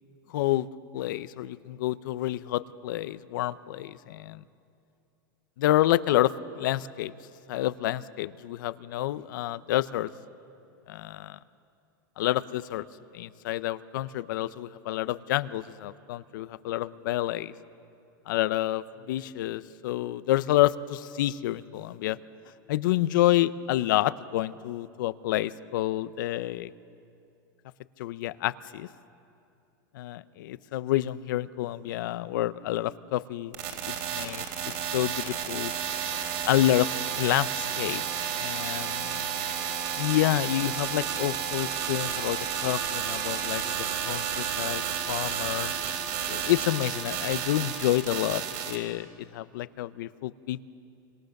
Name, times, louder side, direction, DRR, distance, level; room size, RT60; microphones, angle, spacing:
voice 1, 0.3-0.7 0.9-4.4 5.6-7.1 7.5-10.1 10.9-11.4 12.2-12.8 13.1-17.5 18.3-22.2 22.7-26.7 28.0-28.9 29.9-33.6 33.9-34.5 34.9-35.7 36.4-36.9 37.1-38.0 38.4-39.3 40.0-43.6 44.0-45.7 46.3-50.6, left 14 dB, 70° left, 16 dB, 0.7 m, -28 dB
sound 1, 33.5-48.8, right 8 dB, 55° right, 3.7 m, -31 dB
25.5 x 25.0 x 6.6 m, 2.6 s
supercardioid pair, 155°, 11 cm